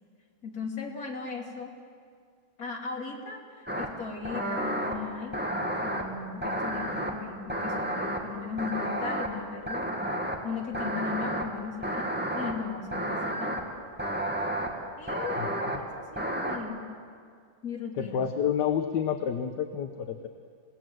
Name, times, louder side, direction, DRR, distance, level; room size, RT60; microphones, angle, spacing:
voice 1, 0.4-1.7 2.6-5.4 5.8-9.9 10.4-13.6 15.0-16.8 17.6-18.2, left 5 dB, 45° left, 0 dB, 3.1 m, -37 dB
sound 1, 3.7-3.9 4.3-5.0 5.3-6.0 6.4-7.1 7.5-8.2 8.6-9.3 9.7-10.4 10.7-11.4 11.8-12.5 12.9-13.6 14.0-14.7 15.1-15.8 16.2-16.6, right 1 dB, 5° right, 1.8 m, -31 dB
voice 2, 15.4-15.9 18.0-20.3, left 8 dB, 65° left, 7 dB, 1.5 m, -29 dB
28.0 x 18.0 x 7.8 m, 2.1 s
omnidirectional pair, 2.1 m